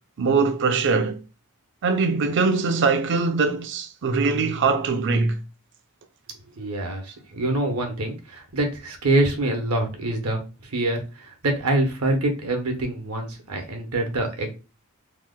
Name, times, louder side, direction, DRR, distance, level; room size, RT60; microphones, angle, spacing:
voice 1, 0.2-1.2 1.8-5.4, right 4 dB, 55° right, 0.5 m, -22 dB
voice 2, 6.6-14.5, right 1 dB, 75° right, 0.9 m, -25 dB
2.9 x 2.1 x 3.7 m
head